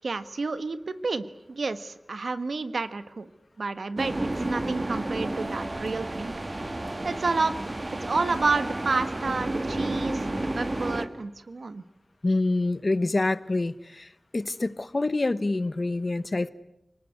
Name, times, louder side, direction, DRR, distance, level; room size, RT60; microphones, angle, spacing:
voice 1, 0.0-3.3 3.6-6.3 7.0-7.6 8.0-11.8, right 3 dB, 90° right, 12 dB, 1.3 m, -30 dB
sound 1, 4.0-11.1, right 1 dB, 40° right, 1.9 m, -31 dB
voice 2, 12.2-16.5, left 2 dB, 50° left, 15 dB, 1.1 m, -26 dB
28.5 x 19.0 x 9.6 m, 0.85 s
wide cardioid pair, 65°, 0 cm